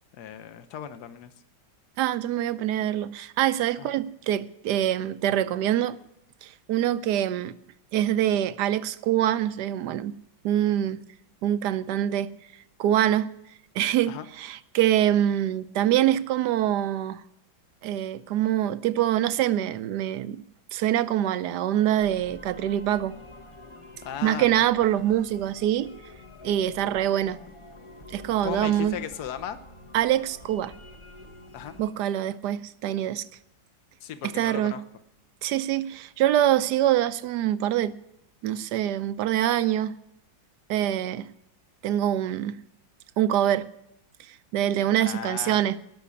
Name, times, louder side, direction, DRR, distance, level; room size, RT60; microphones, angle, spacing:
voice 1, 0.1-1.3 3.8-3.9 14.1-14.3 24.0-24.6 28.4-29.6 31.5-31.8 34.0-34.8 45.0-45.6, left 9 dB, 60° left, 1.4 m, -36 dB
voice 2, 2.0-6.0 6.4-7.5 7.9-10.2 10.4-11.0 11.4-12.3 12.8-13.3 13.7-17.2 17.8-20.4 20.7-23.2 24.2-25.9 26.4-27.4 28.1-29.0 29.9-30.7 31.8-33.2 34.4-34.8 35.4-38.0 38.4-40.0 40.7-41.3 41.8-42.6 43.2-43.7 44.5-45.8, right 11 dB, 70° right, 1.1 m, -24 dB
sound 1, 22.0-31.9, left 2 dB, 25° left, 0.6 m, -47 dB
18.5 x 6.2 x 8.4 m
omnidirectional pair, 2.1 m